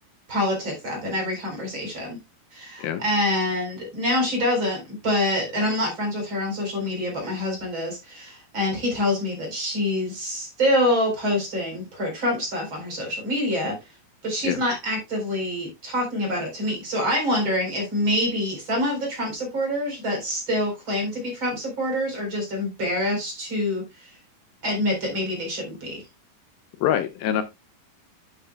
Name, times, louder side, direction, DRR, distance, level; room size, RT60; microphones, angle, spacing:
voice 1, 0.3-2.2 2.5-13.7 14.2-24.1 24.6-26.0, left 1 dB, 30° right, 2 dB, 4.3 m, -26 dB
voice 2, 26.8-27.4, left 10 dB, 80° left, 10 dB, 2.4 m, -24 dB
10.5 x 8.5 x 2.2 m, 0.22 s
omnidirectional pair, 4.5 m